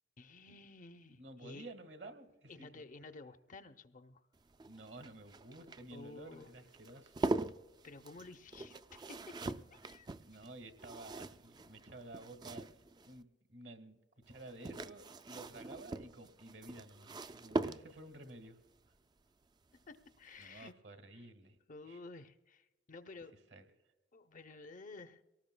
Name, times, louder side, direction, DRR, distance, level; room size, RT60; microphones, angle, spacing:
voice 1, 0.2-1.7 2.5-4.2 5.9-6.5 7.8-10.1 19.7-20.7 21.1-21.3 21.7-23.3 24.1-25.2, left 3 dB, 45° left, 9 dB, 0.6 m, -53 dB
voice 2, 1.1-2.9 4.6-7.2 10.2-14.0 14.3-18.6 20.4-21.6 21.8-22.0 23.5-23.6, right 2 dB, 65° right, 6 dB, 1.6 m, -52 dB
sound 1, 4.4-13.2 14.3-18.2 19.8-20.2 20.4-20.5, right 2 dB, 25° right, 0.4 m, -42 dB
23.5 x 18.5 x 2.2 m, 1.1 s
head